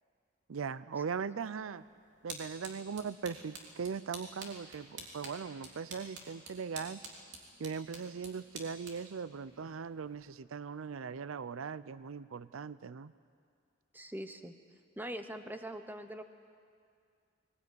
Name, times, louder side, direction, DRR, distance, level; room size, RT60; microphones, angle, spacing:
voice 1, 0.5-1.8 2.2-7.0 7.6-13.1, right 6 dB, 80° right, 16 dB, 0.5 m, -39 dB
sound 1, 1.6-10.3, right 3 dB, 60° right, 3.3 m, -50 dB
voice 2, 13.9-14.5 15.0-16.2, right 1 dB, 10° right, 8 dB, 1.0 m, -42 dB
20.0 x 19.5 x 9.5 m, 2.3 s
head